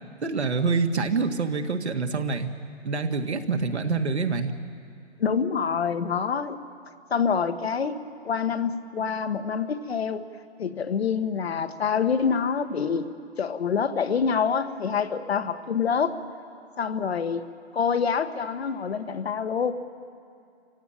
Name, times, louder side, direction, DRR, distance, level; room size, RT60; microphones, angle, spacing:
voice 1, 0.2-2.5 2.8-4.5, right 4 dB, 80° right, 5 dB, 1.9 m, -26 dB
voice 2, 5.2-6.6 7.1-8.0 8.2-10.2 10.6-13.1 13.4-16.1 16.8-17.4 17.7-19.7, left 6 dB, 70° left, 9 dB, 1.4 m, -26 dB
27.5 x 16.0 x 8.9 m, 2.4 s
hypercardioid pair, 140°, 33 cm